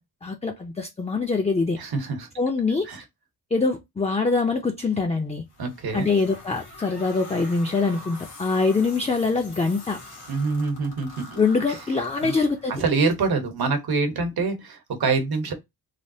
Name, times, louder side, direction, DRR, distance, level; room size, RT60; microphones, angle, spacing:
voice 1, 0.2-1.8 2.4-2.9 3.5-5.4 5.9-10.0 11.4-12.8, left 4 dB, 15° left, 0.4 m, -24 dB
voice 2, 1.8-2.3 2.8-3.0 5.6-6.1 10.3-11.4 11.7-11.8 12.2-12.4 12.7-15.5, right 4 dB, 70° right, 1.0 m, -25 dB
sound 1, 5.5-13.0, left 2 dB, 90° left, 1.4 m, -44 dB
3.3 x 2.3 x 2.7 m
wide cardioid pair, 95°, 39 cm